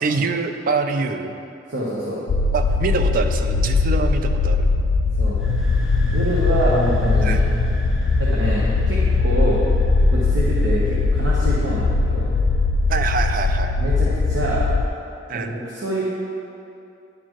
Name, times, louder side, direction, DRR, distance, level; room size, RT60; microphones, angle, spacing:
voice 1, 0.0-1.4 2.5-4.7 7.2-7.4 12.9-13.8 15.3-15.5, right 4 dB, 50° right, 7 dB, 0.4 m, -24 dB
voice 2, 1.7-2.2 5.2-5.4 6.1-7.4 8.2-9.6 10.1-12.3 13.8-14.7 15.3-16.0, right 1 dB, 85° right, -6 dB, 1.0 m, -26 dB
sound 1, 2.3-14.9, left 3 dB, 80° left, 0.3 m, -20 dB
sound 2, 5.2-12.9, equal, ahead, 0.6 m, -32 dB
10.5 x 4.4 x 3.0 m, 2.7 s
head